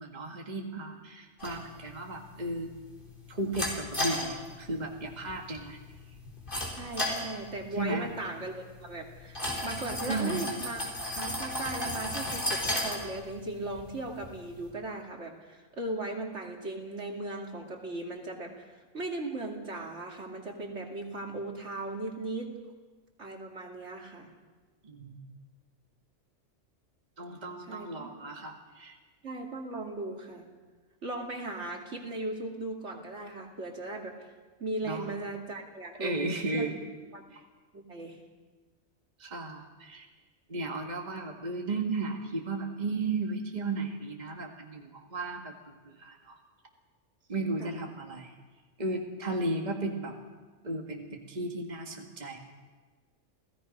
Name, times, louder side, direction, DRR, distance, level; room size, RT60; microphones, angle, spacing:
voice 1, 0.0-2.7 3.3-5.8 7.8-8.1 10.1-10.5 24.8-25.2 27.2-29.0 34.8-35.1 36.0-36.9 37.3-37.4 39.2-40.1 40.5-46.4 47.3-48.3 48.8-50.1 50.6-52.4, right 2 dB, 35° right, 1 dB, 1.9 m, -35 dB
sound 1, 1.4-14.7, left 1 dB, 45° left, 4.4 m, -36 dB
voice 2, 6.7-8.5 8.8-10.9 11.2-22.5 23.2-24.3 27.6-28.1 29.2-30.5 31.0-34.3 34.6-36.7 37.1-37.2 37.7-38.2 47.6-47.7, right 2 dB, 70° right, 1 dB, 2.8 m, -38 dB
29.5 x 17.0 x 5.3 m, 1.3 s
omnidirectional pair, 1.3 m